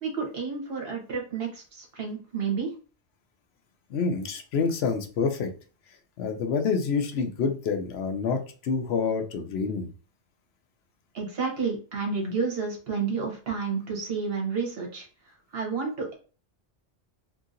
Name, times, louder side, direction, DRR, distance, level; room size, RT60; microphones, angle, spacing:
voice 1, 0.0-2.7 11.1-15.1 15.5-16.1, right 5 dB, 60° right, 0 dB, 1.1 m, -30 dB
voice 2, 3.9-5.5 6.2-9.9, left 5 dB, 70° left, 6 dB, 0.8 m, -27 dB
2.8 x 2.7 x 2.5 m, 0.37 s
omnidirectional pair, 1.2 m